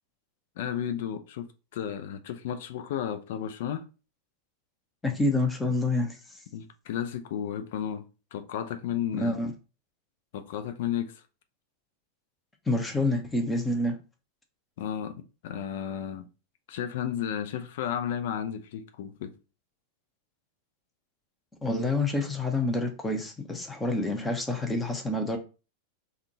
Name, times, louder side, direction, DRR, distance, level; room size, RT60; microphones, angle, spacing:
voice 1, 0.6-1.5 1.7-3.9 6.5-9.4 10.3-11.2 14.8-15.1 15.4-16.3 16.7-19.3, left 9 dB, 55° left, 0.5 m, -33 dB
voice 2, 5.0-6.1 9.2-9.5 12.7-14.0 21.6-25.4, left 2 dB, 10° left, 0.8 m, -27 dB
3.6 x 2.4 x 3.9 m
figure-of-eight pair, 90°, 0 cm